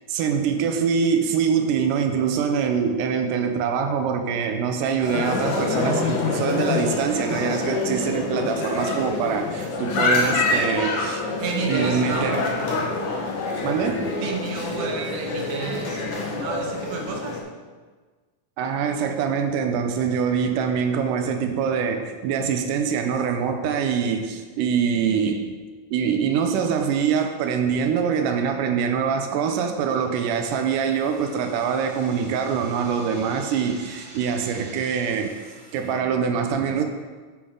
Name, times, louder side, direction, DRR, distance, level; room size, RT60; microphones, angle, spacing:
voice 1, 0.1-11.2 11.7-12.5 13.6-14.2 18.6-25.5 25.9-35.4 35.7-36.8, right 6 dB, 80° right, 6 dB, 2.2 m, -24 dB
sound 1, 5.0-17.4, left 3 dB, 70° left, 2.6 m, -26 dB
voice 2, 11.4-12.4 14.2-16.0 16.3-17.4, right 4 dB, 65° right, 1 dB, 1.9 m, -30 dB
sound 2, 29.8-35.9, right 1 dB, 25° right, 2.1 m, -47 dB
8.1 x 7.2 x 3.7 m, 1.4 s
omnidirectional pair, 3.8 m